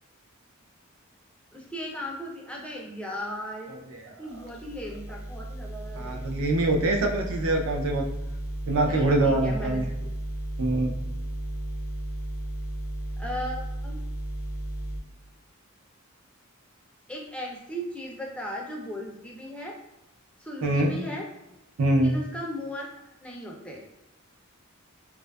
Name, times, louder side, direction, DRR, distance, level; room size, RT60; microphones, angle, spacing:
voice 1, 1.5-3.7 4.0-6.2 8.9-9.8 13.2-14.0 17.1-19.8 20.4-21.3 22.0-22.9 23.2-23.8, equal, 5° left, -1 dB, 0.3 m, -37 dB
sound 1, 4.3-15.0, right 1 dB, 75° left, 0.6 m, -34 dB
voice 2, 5.9-8.0 8.7-9.9 10.6-10.9 20.6-20.9 21.8-22.1, right 2 dB, 70° right, 2 dB, 0.4 m, -24 dB
2.4 x 2.3 x 2.2 m, 0.92 s
head